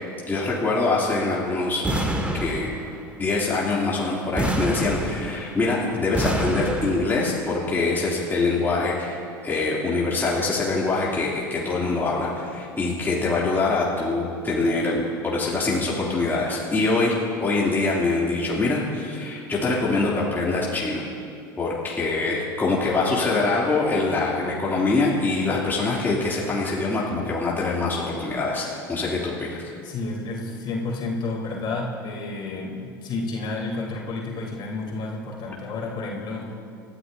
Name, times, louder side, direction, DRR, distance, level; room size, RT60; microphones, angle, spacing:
voice 1, 0.3-1.8 2.3-2.7 3.2-9.2 9.4-21.0 21.6-29.6, left 3 dB, 15° left, -6 dB, 2.9 m, -24 dB
sound 1, 1.8-3.1 4.4-5.6 6.1-7.3, right 1 dB, 10° right, 2.0 m, -27 dB
voice 2, 29.8-36.5, left 3 dB, 45° left, -3 dB, 3.8 m, -30 dB
29.0 x 14.0 x 2.8 m, 2.4 s
figure-of-eight pair, 75°, 11 cm